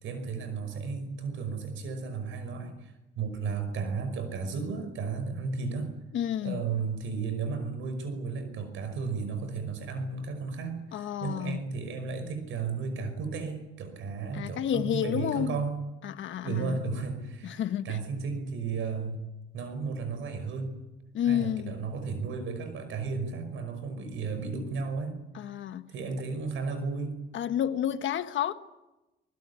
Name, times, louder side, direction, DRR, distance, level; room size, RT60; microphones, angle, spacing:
voice 1, 0.0-5.9 6.4-15.8 16.4-19.2 19.5-20.7 21.2-25.2 25.9-27.1, right 4 dB, 80° right, 5.5 m, -34 dB
voice 2, 6.1-6.6 10.9-11.6 14.3-15.6 16.0-16.8 17.4-18.0 21.1-21.8 25.3-25.9 27.3-28.5, left 10 dB, 75° left, 1.4 m, -30 dB
24.0 x 20.0 x 9.7 m
cardioid pair, 90°, 20 cm